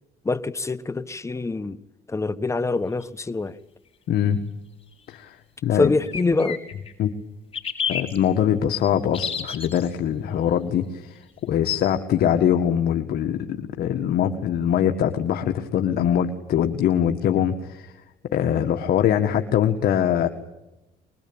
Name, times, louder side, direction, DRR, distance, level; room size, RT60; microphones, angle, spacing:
voice 1, 0.2-1.8 2.1-3.5 5.8-6.6, left 3 dB, 15° left, 1.2 m, -24 dB
sound 1, 3.0-3.1 6.1-6.9 7.5-8.2 9.1-9.9, left 7 dB, 35° left, 6.9 m, -29 dB
voice 2, 4.1-4.4 5.1-5.4 5.6-5.9 7.0-7.1 7.9-17.9 18.3-20.3, left 9 dB, 65° left, 1.9 m, -22 dB
25.0 x 21.5 x 9.0 m
cardioid pair, 110°, 17 cm